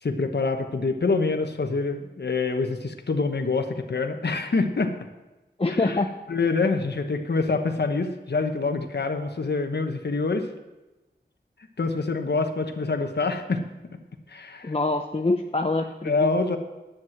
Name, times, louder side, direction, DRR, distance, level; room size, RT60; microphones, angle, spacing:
voice 1, 0.0-5.0 5.7-6.0 6.3-10.5 11.8-13.6 14.3-14.7 16.0-16.6, left 3 dB, 65° left, 5 dB, 1.1 m, -26 dB
voice 2, 5.6-6.1 14.6-16.3, left 2 dB, 30° left, 4 dB, 0.7 m, -25 dB
10.5 x 7.5 x 7.8 m, 1.1 s
wide cardioid pair, 70°, 18 cm